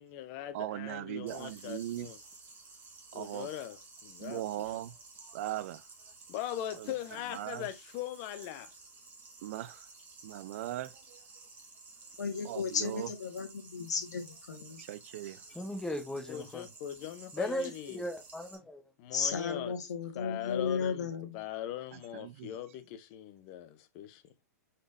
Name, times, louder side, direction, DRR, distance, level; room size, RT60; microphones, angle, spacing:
voice 1, 0.0-2.2 3.1-4.4 6.3-8.7 16.3-18.0 19.0-19.7 20.2-21.1 21.3-24.2, left 12 dB, 40° left, 0.7 m, -40 dB
voice 2, 0.5-2.1 3.1-3.5 4.2-4.9 5.3-5.8 6.8-6.9 7.3-7.7 9.4-9.8 10.2-11.2 12.4-13.1 14.8-15.4 21.9-22.5, right 13 dB, 50° right, 0.4 m, -39 dB
sound 1, 1.3-18.5, right 3 dB, 20° right, 1.5 m, -54 dB
voice 3, 12.2-14.8 17.5-17.6 19.1-21.4, left 6 dB, 85° left, 1.2 m, -34 dB
voice 4, 15.5-16.7 17.3-18.8, equal, 5° left, 0.9 m, -37 dB
5.0 x 4.1 x 2.5 m
hypercardioid pair, 135°, 9 cm